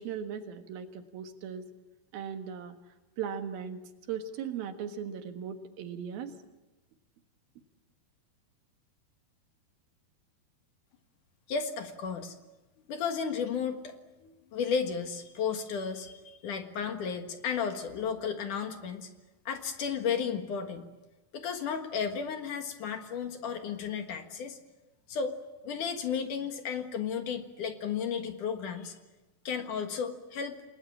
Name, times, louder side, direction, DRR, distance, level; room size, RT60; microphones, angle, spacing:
voice 1, 0.0-1.6 2.1-2.8 3.2-3.8 4.1-6.4, right 7 dB, 75° right, 7 dB, 3.3 m, -38 dB
voice 2, 11.5-12.4 12.9-19.1 19.5-20.9 21.3-24.6 25.1-25.4 25.6-28.9 29.4-30.6, left 6 dB, 60° left, 6 dB, 2.9 m, -33 dB
29.0 x 21.0 x 8.7 m, 1.1 s
omnidirectional pair, 4.4 m